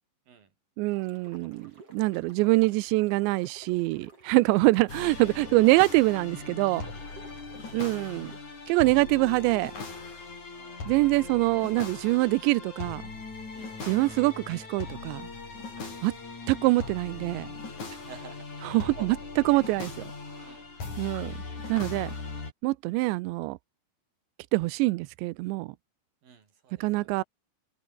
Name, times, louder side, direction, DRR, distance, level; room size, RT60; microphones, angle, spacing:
voice 1, 0.8-6.9 7.7-8.3 8.7-9.7 10.9-13.0 13.8-15.2 16.0-16.2 16.5-17.5 18.6-19.9 21.0-21.4 21.7-22.1 22.6-23.6 24.5-25.8 26.8-27.2, right 21 dB, 85° right, 2.5 m, -24 dB
sound 1, 0.9-8.4, right 3 dB, 30° right, 8.0 m, -53 dB
sound 2, 4.9-22.5, left 4 dB, 35° left, 7.4 m, -40 dB
voice 2, 10.5-11.1 11.5-11.6 12.2-12.3 13.5-13.7 15.8-16.0 17.9-18.5 19.0-19.2 19.5-19.6 20.4-21.0 26.2-27.2, right 6 dB, 45° right, 5.7 m, -50 dB
omnidirectional pair, 5.9 m